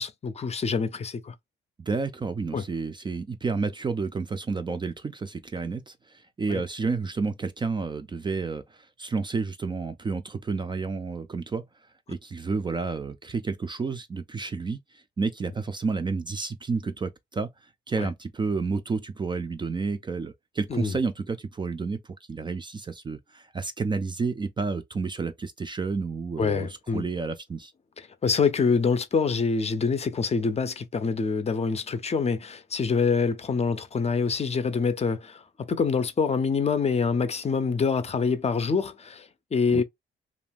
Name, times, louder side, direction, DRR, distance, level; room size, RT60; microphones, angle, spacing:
voice 1, 0.0-1.3 2.5-2.6 6.5-6.6 18.0-18.1 20.7-21.0 26.4-27.0 28.2-39.8, left 5 dB, 30° left, 0.5 m, -26 dB
voice 2, 1.8-11.7 12.1-17.5 17.9-22.0 22.3-27.7 39.7-39.8, right 4 dB, 25° right, 0.4 m, -30 dB
2.5 x 2.2 x 3.4 m
cardioid pair, 90°, 20 cm